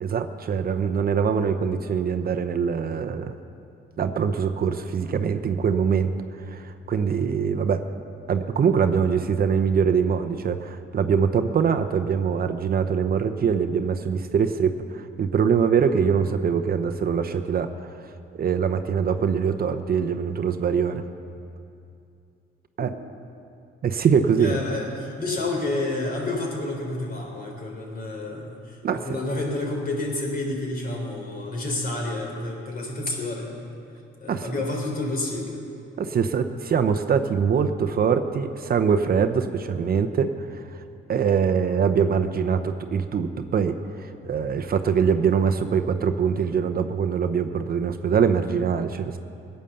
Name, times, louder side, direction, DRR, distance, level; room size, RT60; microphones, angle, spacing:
voice 1, 0.0-3.3 4.0-6.1 6.5-7.8 8.3-17.9 18.3-21.0 22.8-22.9 23.8-24.6 28.8-29.0 34.3-34.5 36.0-40.8 41.1-49.2, right 6 dB, 50° right, 8 dB, 0.8 m, -23 dB
voice 2, 24.4-33.6 34.2-35.6, left 2 dB, 45° left, 1 dB, 3.5 m, -29 dB
16.5 x 9.1 x 6.8 m, 2.5 s
cardioid pair, 90°, 20 cm